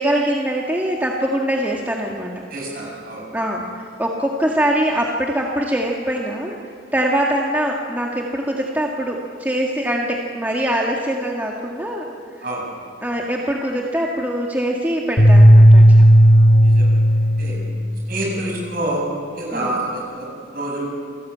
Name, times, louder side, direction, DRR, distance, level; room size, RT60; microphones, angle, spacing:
voice 1, 0.0-2.3 3.3-6.5 6.9-12.1 13.0-16.0 17.5-17.8 19.5-19.7, right 1 dB, 10° right, -2 dB, 1.7 m, -23 dB
voice 2, 2.5-3.3 12.4-12.6 16.6-17.1 17.4-17.6 18.1-20.9, right 1 dB, 50° right, -1 dB, 7.9 m, -27 dB
sound 1, 15.2-17.7, equal, 90° left, 3.8 m, -10 dB
28.0 x 19.0 x 8.6 m, 2.5 s
head